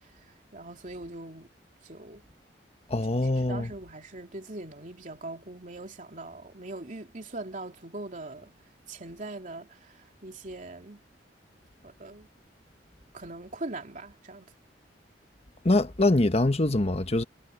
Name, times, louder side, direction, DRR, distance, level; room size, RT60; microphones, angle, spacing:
voice 1, 0.5-1.5 1.8-2.2 3.2-8.5 8.9-10.0 10.2-11.0 11.8-12.3 13.1-14.5, right 2 dB, 45° right, 3.2 m, -41 dB
voice 2, 2.9-3.7 15.6-17.2, left 2 dB, 35° left, 1.3 m, -24 dB
head